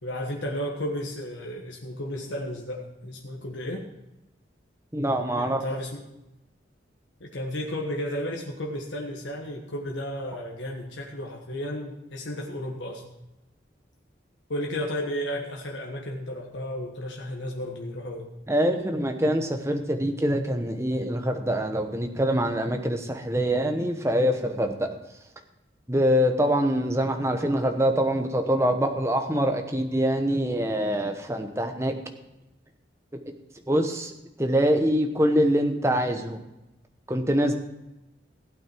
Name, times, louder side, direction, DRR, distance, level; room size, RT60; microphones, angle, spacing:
voice 1, 0.0-3.9 5.3-6.0 7.2-13.0 14.5-18.3, equal, 85° left, -1 dB, 1.4 m, -33 dB
voice 2, 4.9-5.6 18.5-24.9 25.9-32.0 33.7-34.1 34.4-36.4 37.1-37.5, equal, 15° right, 5 dB, 1.0 m, -24 dB
16.0 x 8.7 x 4.5 m, 0.95 s
head